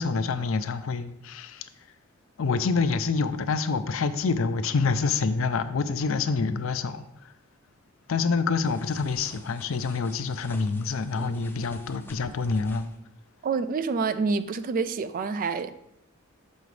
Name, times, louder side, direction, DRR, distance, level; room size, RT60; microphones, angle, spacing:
voice 1, 0.0-1.7 2.4-7.3 8.1-12.9, left 4 dB, 70° left, 0.5 m, -27 dB
sound 1, 8.6-13.0, left 1 dB, 10° left, 0.5 m, -47 dB
voice 2, 13.4-15.7, right 4 dB, 40° right, 0.3 m, -27 dB
6.8 x 5.3 x 3.2 m
head